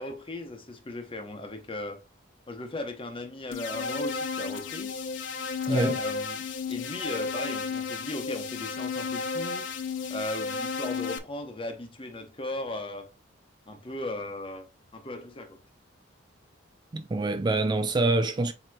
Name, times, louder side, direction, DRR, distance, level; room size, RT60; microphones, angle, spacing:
voice 1, 0.0-2.0 2.5-4.9 5.6-6.4 6.7-9.7 10.1-13.1 13.7-15.6, left 2 dB, 25° left, 0.9 m, -37 dB
sound 1, 3.5-11.2, left 5 dB, 70° left, 0.6 m, -33 dB
voice 2, 5.7-6.0 16.9-18.5, right 2 dB, 20° right, 0.3 m, -25 dB
7.6 x 2.9 x 2.3 m
head